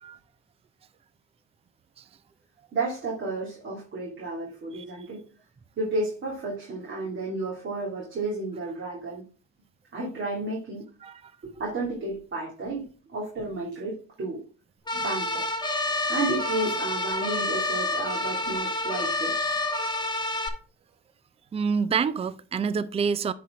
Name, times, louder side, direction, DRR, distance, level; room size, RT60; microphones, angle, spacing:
voice 1, 2.7-5.2 5.8-9.2 9.9-10.8 11.4-14.4 14.9-15.5 16.0-19.4, right 2 dB, 40° right, 2.7 m, -32 dB
sound 1, 14.9-20.5, left 2 dB, 15° left, 1.3 m, -28 dB
voice 2, 21.5-23.3, right 6 dB, 20° right, 0.4 m, -27 dB
9.8 x 4.4 x 3.7 m
supercardioid pair, 90°, 31 cm